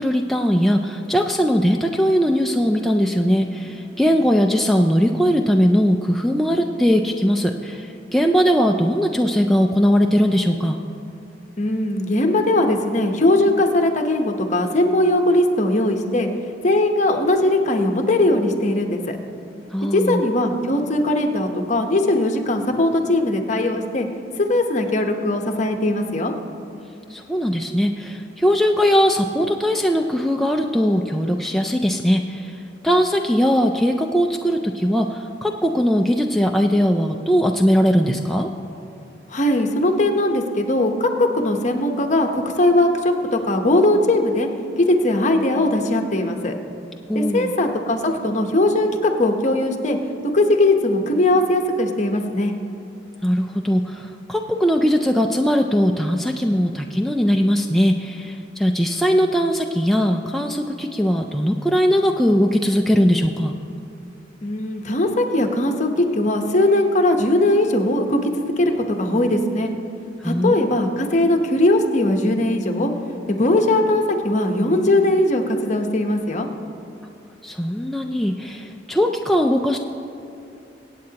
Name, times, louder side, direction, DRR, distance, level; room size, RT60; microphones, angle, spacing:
voice 1, 0.0-10.8 19.7-20.2 27.1-38.5 47.1-47.5 53.2-63.5 70.2-70.7 77.4-79.8, equal, ahead, 2 dB, 0.4 m, -20 dB
voice 2, 11.6-16.3 16.6-19.2 19.9-24.1 24.4-26.3 39.3-44.5 44.8-46.5 47.1-50.0 50.3-52.5 64.4-69.7 70.2-72.9 73.3-76.5, left 1 dB, 45° left, 4 dB, 1.0 m, -19 dB
23.5 x 8.5 x 2.9 m, 2.7 s
head